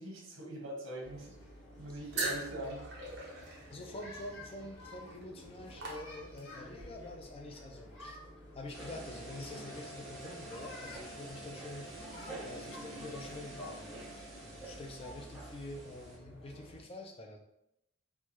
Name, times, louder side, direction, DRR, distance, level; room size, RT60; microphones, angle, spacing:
voice 1, 0.0-1.3 1.8-2.9, right 1 dB, 80° right, -1 dB, 1.2 m, -42 dB
sound 1, 1.0-16.8, left 1 dB, 85° left, 1.4 m, -51 dB
sound 2, 2.1-6.6, right 3 dB, 55° right, 0.9 m, -41 dB
voice 2, 3.7-8.2 8.5-11.9 12.4-17.4, left 2 dB, 25° left, 3 dB, 0.4 m, -46 dB
sound 3, 8.7-16.2, right 2 dB, ahead, 0.9 m, -47 dB
4.5 x 2.3 x 2.9 m, 0.83 s
head